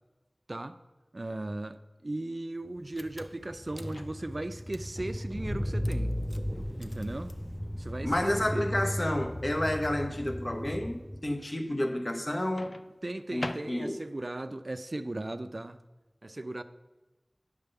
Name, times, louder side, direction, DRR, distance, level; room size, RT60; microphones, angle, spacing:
voice 1, 1.1-6.1 6.8-7.3 7.8-8.7 13.0-15.8 16.2-16.6, right 2 dB, 55° right, 0.3 m, -37 dB
Car / Engine, 2.7-2.8 3.0-11.3, equal, 10° left, 0.6 m, -35 dB
Microwave oven, 3.9-4.6 6.5-6.8 12.6-14.2, left 2 dB, 65° left, 0.3 m, -42 dB
voice 2, 8.0-12.8 13.3-14.0, left 1 dB, 45° left, 0.8 m, -30 dB
9.7 x 3.5 x 6.7 m
wide cardioid pair, 50°, 0 cm